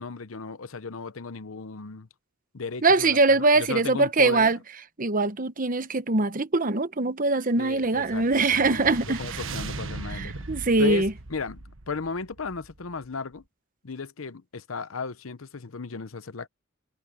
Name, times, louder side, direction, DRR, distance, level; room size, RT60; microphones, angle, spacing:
voice 1, 0.0-2.1 2.5-4.5 7.6-8.2 8.5-10.4 10.8-11.0 11.3-13.4 13.8-16.5, left 4 dB, 90° left, 0.8 m, -35 dB
voice 2, 2.8-4.6 5.0-9.2 10.1-11.1, right 3 dB, 40° right, 1.0 m, -22 dB
sound 1, 7.7-13.1, right 3 dB, 75° right, 1.4 m, -39 dB
head